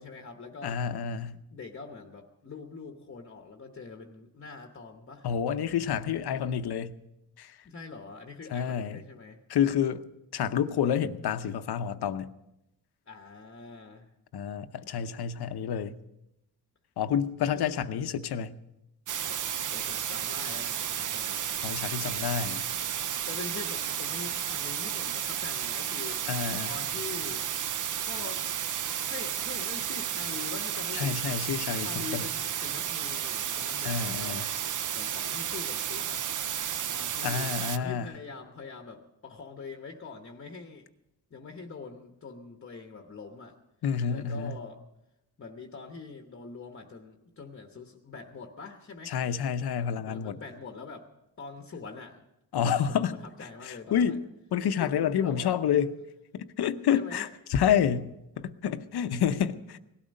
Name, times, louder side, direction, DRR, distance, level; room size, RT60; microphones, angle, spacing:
voice 1, 0.0-0.8 1.5-5.3 7.6-9.4 13.1-14.1 17.6-17.7 19.1-21.5 23.3-26.3 26.6-27.4 28.0-28.4 29.1-31.2 31.8-34.6 34.9-36.2 36.9-40.9 41.3-43.6 44.1-44.8 45.4-49.1 50.0-51.1 51.4-52.3 52.5-52.8 53.1-54.2 54.8-55.6 56.7-57.3, left 4 dB, 35° left, 4 dB, 1.0 m, -44 dB
voice 2, 0.6-1.4 5.2-7.0 7.4-7.6 8.5-9.0 9.5-10.0 10.3-12.3 14.3-16.0 17.0-18.6 21.6-22.6 26.3-26.7 30.9-32.3 33.8-34.4 37.2-38.1 43.8-44.6 49.1-50.4 52.5-53.2 53.6-55.9 56.3-59.8, left 8 dB, 90° left, 11 dB, 0.8 m, -29 dB
sound 1, 19.1-37.8, right 9 dB, 55° right, 0.6 m, -32 dB
18.0 x 12.5 x 5.3 m, 0.89 s
wide cardioid pair, 150°, 37 cm